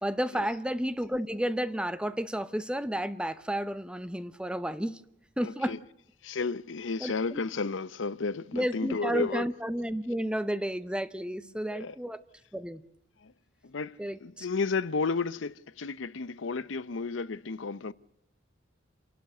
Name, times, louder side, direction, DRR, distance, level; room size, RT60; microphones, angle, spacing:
voice 1, 0.0-5.0 5.4-5.8 7.0-7.4 8.5-12.2 12.5-12.8 14.0-14.5, right 1 dB, 5° right, 0.8 m, -32 dB
voice 2, 5.4-5.8 6.2-9.5 11.7-12.0 13.2-13.3 13.6-17.9, left 4 dB, 75° left, 0.7 m, -32 dB
28.5 x 12.0 x 7.8 m
head